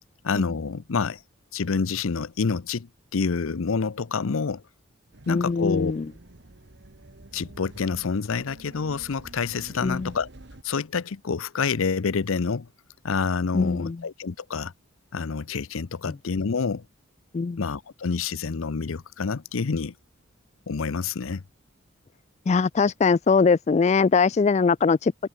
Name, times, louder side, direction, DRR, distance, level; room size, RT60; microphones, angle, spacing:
voice 1, 0.2-1.2 1.5-4.6 5.3-5.9 7.3-10.3 10.6-12.7 13.0-14.7 15.1-16.8 17.6-19.9 20.7-21.4, left 5 dB, 75° left, 0.6 m, -27 dB
sound 1, 5.1-10.6, right 1 dB, 55° right, 1.5 m, -48 dB
voice 2, 5.3-6.1 9.8-10.1 13.5-14.0 17.3-17.6 22.5-25.3, left 5 dB, 30° left, 0.3 m, -21 dB
head